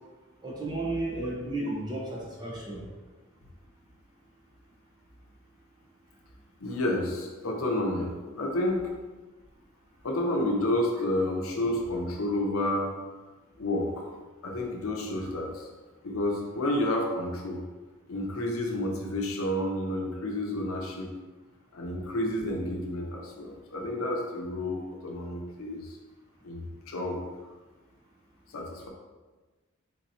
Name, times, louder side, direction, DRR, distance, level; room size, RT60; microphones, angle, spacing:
voice 1, 0.4-2.9, right 2 dB, 20° right, -3 dB, 0.8 m, -33 dB
voice 2, 6.6-8.9 10.0-12.9 13.6-14.1 14.4-15.7 16.0-17.6 18.1-21.1 21.7-26.0 26.4-27.2 28.5-28.9, left 1 dB, 75° left, 1 dB, 0.7 m, -30 dB
4.1 x 4.0 x 2.7 m, 1.2 s
head